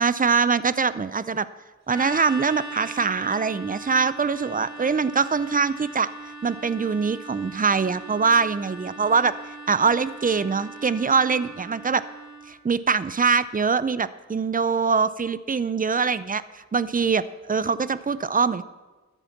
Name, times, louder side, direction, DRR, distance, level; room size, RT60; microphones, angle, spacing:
voice 1, 0.0-1.5 1.9-9.3 9.7-12.0 12.5-18.6, right 5 dB, 30° right, 16 dB, 0.5 m, -23 dB
sound 1, 1.9-12.5, right 2 dB, 65° right, 2.2 m, -40 dB
12.5 x 10.0 x 5.9 m, 1.3 s
wide cardioid pair, 100°, 30 cm